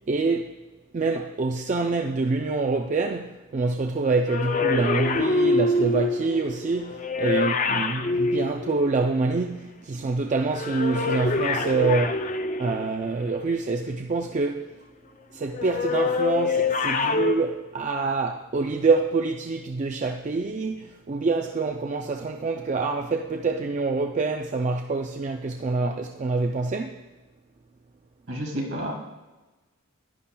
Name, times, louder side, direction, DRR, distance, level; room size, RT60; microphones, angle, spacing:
voice 1, 0.1-0.6 0.9-12.3 12.6-14.7 15.3-27.0, right 3 dB, 35° right, 0.3 m, -26 dB
sound 1, 4.3-9.3 10.5-13.1 15.5-17.3, left 3 dB, 35° left, 0.4 m, -25 dB
voice 2, 28.3-28.9, equal, 65° right, 2.2 m, -30 dB
11.0 x 10.0 x 2.2 m
head